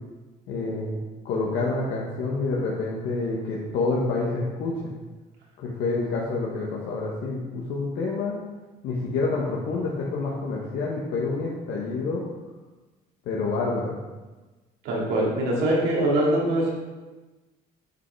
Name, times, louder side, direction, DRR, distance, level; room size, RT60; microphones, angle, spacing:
voice 1, 0.5-1.0 1.2-4.9 5.6-8.3 8.8-12.2 13.2-14.0, left 3 dB, 80° left, -4 dB, 1.5 m, -28 dB
voice 2, 14.8-16.7, right 1 dB, 80° right, -4 dB, 3.0 m, -23 dB
9.6 x 5.7 x 4.8 m, 1.2 s
cardioid pair, 110°, 17 cm